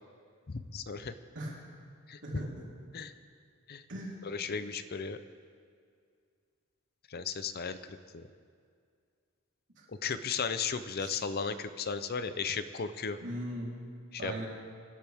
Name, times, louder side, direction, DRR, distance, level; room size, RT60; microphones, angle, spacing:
voice 1, 0.5-1.1 2.1-2.2 2.9-3.1 3.7-3.8 4.2-5.2 7.1-8.2 10.0-13.2 14.1-14.4, left 5 dB, 50° left, 11 dB, 0.6 m, -35 dB
voice 2, 2.2-2.6 3.9-4.2 9.8-9.9 11.0-11.2 13.2-13.7 14.2-14.5, right 1 dB, 60° right, -4 dB, 3.7 m, -39 dB
26.5 x 12.0 x 3.6 m, 2.2 s
head